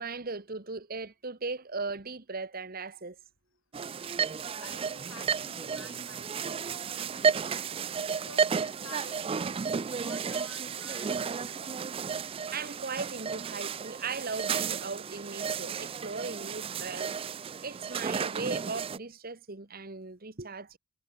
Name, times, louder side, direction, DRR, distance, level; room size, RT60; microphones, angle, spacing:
voice 1, 0.0-3.2 12.5-17.1 17.6-20.8, right 4 dB, 45° right, 1.6 m, -38 dB
sound 1, 3.7-19.0, right 6 dB, 30° right, 0.4 m, -33 dB
voice 2, 4.6-12.0, left 4 dB, 80° left, 6.0 m, -52 dB
head